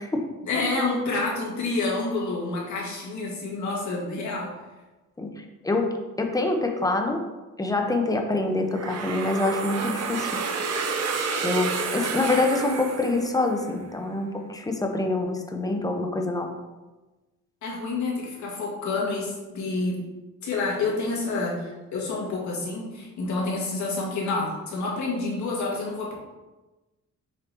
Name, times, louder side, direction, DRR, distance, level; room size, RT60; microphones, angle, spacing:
voice 1, 0.4-4.5 17.6-20.0 20.4-26.1, left 3 dB, 70° left, -3 dB, 2.1 m, -28 dB
voice 2, 5.2-7.2 7.6-10.3 11.4-16.6, left 2 dB, 10° left, 3 dB, 0.9 m, -26 dB
sound 1, 8.7-13.7, right 5 dB, 55° right, 0.9 m, -30 dB
6.9 x 4.9 x 3.0 m, 1.1 s
cardioid pair, 90°, 30 cm